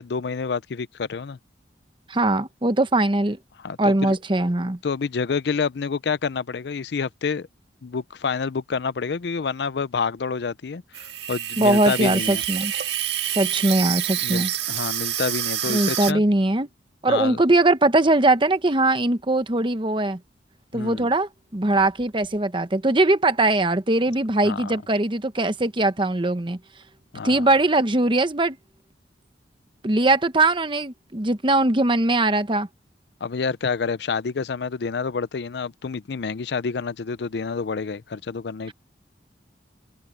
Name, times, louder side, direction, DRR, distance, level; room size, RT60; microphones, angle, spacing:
voice 1, 0.0-1.4 3.6-4.2 4.8-7.5 7.8-12.4 14.2-16.2 17.1-17.4 20.7-21.1 24.4-24.7 27.1-27.5 33.2-38.7, left 5 dB, 65° left, 0.5 m, -28 dB
voice 2, 2.1-3.4 3.8-4.8 11.6-12.7 13.3-14.5 15.7-16.7 17.0-20.2 20.7-26.6 27.2-28.6 29.8-32.7, right 2 dB, 25° right, 1.0 m, -21 dB
Water tap faucet / Sink (filling or washing), 10.9-16.1, right 12 dB, 70° right, 1.8 m, -27 dB
head